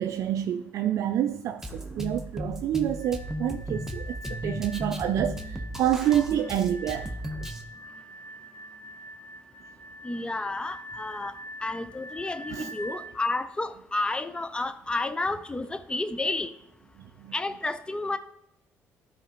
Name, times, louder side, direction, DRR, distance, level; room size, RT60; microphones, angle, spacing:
voice 1, 0.0-4.2 4.4-7.2 12.5-12.7 17.2-17.3, right 10 dB, 65° right, 0.4 m, -28 dB
Drum kit, 1.6-7.6, equal, 5° right, 1.0 m, -35 dB
sound 1, 2.9-13.1, equal, 35° left, 1.4 m, -45 dB
voice 2, 10.0-11.3 11.6-16.5 17.3-18.2, left 2 dB, 15° left, 0.6 m, -31 dB
12.0 x 4.9 x 3.0 m
supercardioid pair, 80°, 6 cm